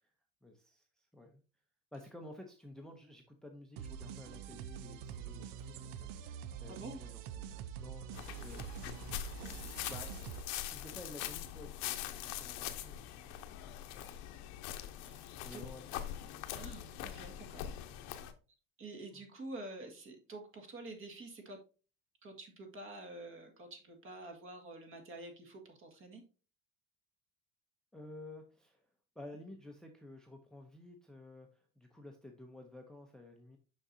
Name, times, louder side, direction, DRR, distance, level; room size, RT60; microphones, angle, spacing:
voice 1, 0.4-1.4 1.9-8.1 8.4-8.7 9.4-10.3 10.6-13.5 15.0-16.6 17.9-18.1 19.1-19.2 27.9-28.8 29.2-33.6, left 1 dB, ahead, 3 dB, 0.7 m, -53 dB
sound 1, 3.8-10.4, right 8 dB, 70° right, 0.7 m, -45 dB
voice 2, 6.7-7.0 15.0-15.2 15.5-15.6 16.5-17.7 18.8-21.6 22.2-26.2, right 2 dB, 40° right, 4 dB, 1.9 m, -48 dB
sound 2, 8.1-18.3, left 12 dB, 85° left, 0.9 m, -43 dB
6.4 x 6.2 x 2.7 m, 0.35 s
cardioid pair, 140°, 34 cm